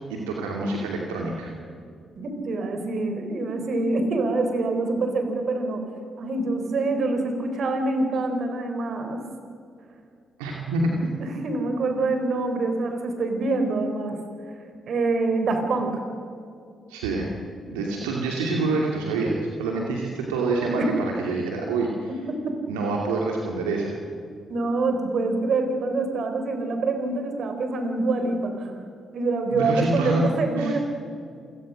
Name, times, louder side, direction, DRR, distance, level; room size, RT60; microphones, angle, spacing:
voice 1, 0.1-1.5 10.4-11.1 16.9-17.4 17.7-22.1 22.7-24.0 29.5-30.3 30.6-30.8, right 3 dB, 85° right, -1 dB, 2.5 m, -26 dB
voice 2, 2.2-5.8 6.2-9.2 11.2-14.2 14.9-16.0 20.8-20.9 22.1-22.2 24.5-28.8 29.1-30.8, right 3 dB, 60° right, 6 dB, 4.1 m, -25 dB
28.0 x 19.0 x 6.4 m, 2.5 s
hypercardioid pair, 40°, 0 cm